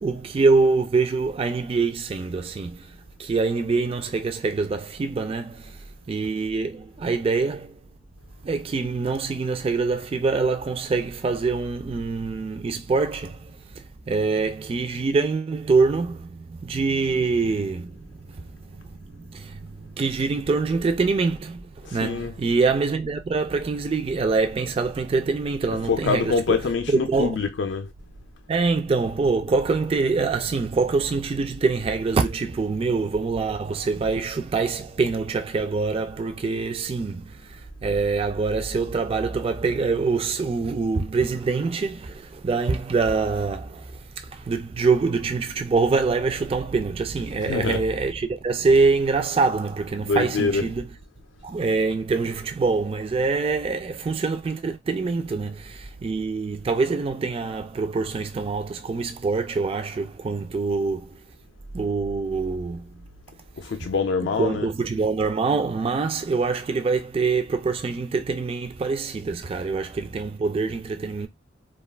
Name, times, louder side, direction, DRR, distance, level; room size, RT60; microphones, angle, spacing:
voice 1, 0.0-2.9 3.2-5.8 6.1-7.8 8.4-26.3 26.9-27.4 28.5-50.9 51.4-61.2 61.7-63.0 64.2-71.3, right 4 dB, 30° right, 0.3 m, -25 dB
voice 2, 21.8-22.3 25.9-27.9 47.4-47.8 50.0-50.7 63.6-64.7, left 4 dB, 70° left, 0.4 m, -25 dB
2.3 x 2.3 x 3.2 m
head